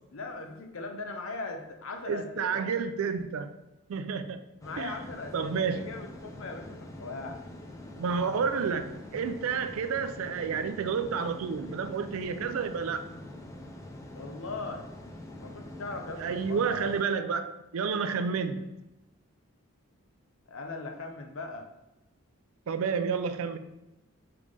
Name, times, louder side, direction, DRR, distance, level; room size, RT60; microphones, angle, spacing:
voice 1, 0.1-2.7 4.6-7.4 14.1-14.9 15.4-16.9 20.5-21.7, left 3 dB, 70° left, 0.6 m, -39 dB
voice 2, 2.1-3.5 3.9-4.4 4.8-4.9 5.3-5.9 8.0-13.1 16.2-18.7 22.7-23.6, right 6 dB, 75° right, 0.4 m, -30 dB
sound 1, 4.6-17.0, left 1 dB, 15° left, 0.3 m, -45 dB
3.8 x 3.4 x 3.2 m
head